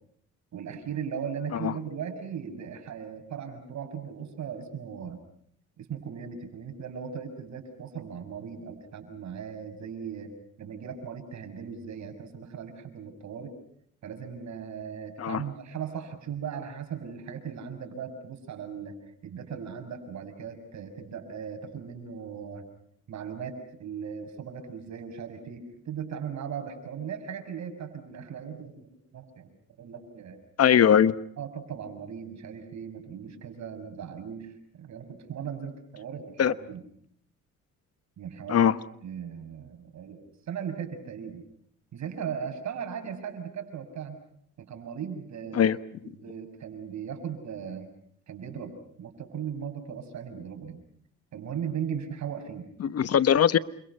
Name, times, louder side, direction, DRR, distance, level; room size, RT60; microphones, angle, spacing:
voice 1, 0.5-5.2 5.8-10.3 10.6-13.5 14.0-19.0 19.2-22.6 23.1-28.9 29.1-29.5 29.8-30.4 31.4-36.8 38.2-38.7 39.0-40.2 40.5-41.4 41.9-44.2 44.6-45.7 46.0-47.9 48.3-50.8 51.3-52.7, right 7 dB, 65° right, 7 dB, 6.5 m, -38 dB
voice 2, 30.6-31.1 36.4-36.5 38.5-38.8 45.5-45.8 52.8-53.6, left 9 dB, 55° left, 14 dB, 1.0 m, -20 dB
29.0 x 26.5 x 5.5 m, 0.68 s
cardioid pair, 90°, 30 cm